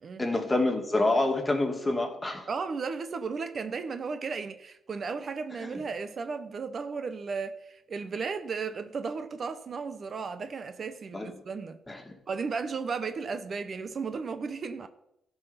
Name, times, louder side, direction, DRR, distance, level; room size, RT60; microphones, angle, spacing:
voice 1, 0.2-2.5 5.6-5.8 11.1-11.3 11.9-12.1, left 2 dB, 15° left, 2.2 m, -27 dB
voice 2, 2.5-11.8 12.3-14.9, right 5 dB, 50° right, 0.8 m, -34 dB
14.5 x 5.7 x 5.7 m
cardioid pair, 95°, 0 cm